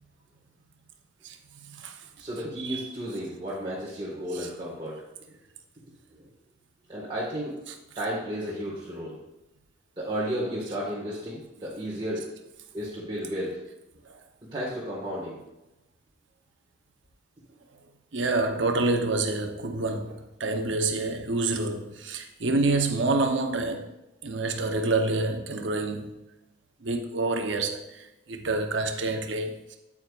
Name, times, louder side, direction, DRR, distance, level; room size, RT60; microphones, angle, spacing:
voice 1, 1.6-2.0 2.6-2.9 4.3-4.5 14.1-14.2 18.1-23.9 24.2-26.1 26.8-29.8, right 3 dB, 70° right, 0.9 m, -28 dB
voice 2, 2.2-5.3 6.1-6.2 6.9-7.5 7.9-9.1 10.0-12.3 12.7-13.6 14.5-15.4, equal, 25° right, 1.7 m, -33 dB
8.9 x 8.7 x 2.5 m
head